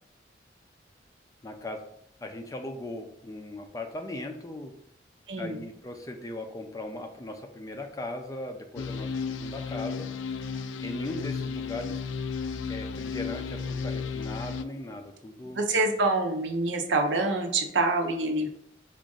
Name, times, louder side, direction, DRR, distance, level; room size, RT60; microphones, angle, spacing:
voice 1, 1.4-1.8 2.2-4.7 5.4-10.1 10.8-12.0 12.7-15.7, left 1 dB, 20° left, 4 dB, 0.4 m, -38 dB
voice 2, 5.3-5.6 15.5-18.5, right 2 dB, 80° right, 3 dB, 0.7 m, -26 dB
sound 1, 8.8-14.6, left 5 dB, 90° left, 0.3 m, -33 dB
4.9 x 2.5 x 3.8 m, 0.73 s
head